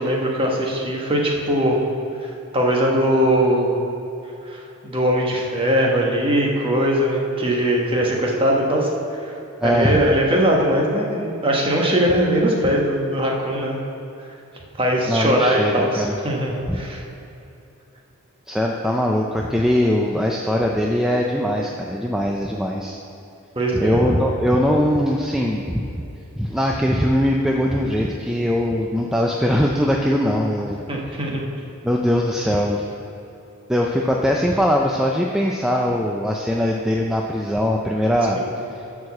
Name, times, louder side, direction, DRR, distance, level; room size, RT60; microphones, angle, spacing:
voice 1, 0.0-1.8 2.2-3.8 4.4-8.9 9.2-9.3 9.6-13.8 14.8-17.0 23.5-24.1 30.9-31.4 38.3-38.4, equal, 25° right, -1 dB, 1.2 m, -20 dB
voice 2, 9.6-10.0 15.1-16.2 16.7-16.8 18.5-23.0 23.7-25.8 26.4-31.2 31.8-32.9 33.7-38.4, equal, ahead, -1 dB, 0.4 m, -21 dB
11.0 x 4.8 x 7.0 m, 2.8 s
head